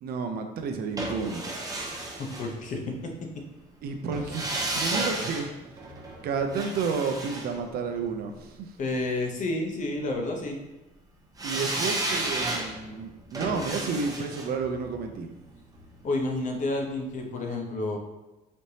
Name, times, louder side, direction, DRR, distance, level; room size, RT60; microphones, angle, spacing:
voice 1, 0.0-1.4 3.8-5.5 6.2-8.7 11.4-15.3, right 5 dB, 65° right, 5 dB, 0.5 m, -31 dB
sound 1, 1.0-3.1 4.1-8.4 11.4-16.4 16.7-16.8, right 2 dB, 20° right, 0.8 m, -33 dB
voice 2, 2.2-3.1 8.8-10.6 16.0-18.0, left 2 dB, 50° left, 2 dB, 0.8 m, -30 dB
4.1 x 3.3 x 2.8 m, 1.0 s
cardioid pair, 110°, 17 cm